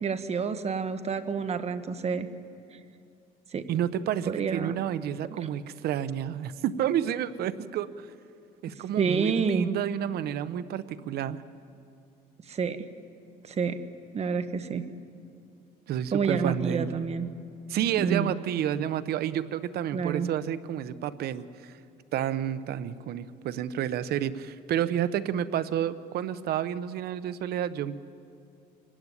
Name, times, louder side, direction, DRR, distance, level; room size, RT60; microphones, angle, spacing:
voice 1, 0.0-2.3 3.5-3.6 4.3-4.8 5.3-5.4 9.0-9.7 12.5-12.8 13.4-13.8 14.1-14.9 16.1-17.3 18.0-18.3 19.9-20.3, right 5 dB, 40° right, 10 dB, 1.4 m, -28 dB
voice 2, 3.7-8.1 8.6-11.4 15.9-16.9 17.7-21.7 22.1-28.0, right 10 dB, 70° right, 14 dB, 0.9 m, -30 dB
25.0 x 16.5 x 9.8 m, 2.5 s
cardioid pair, 110°, 17 cm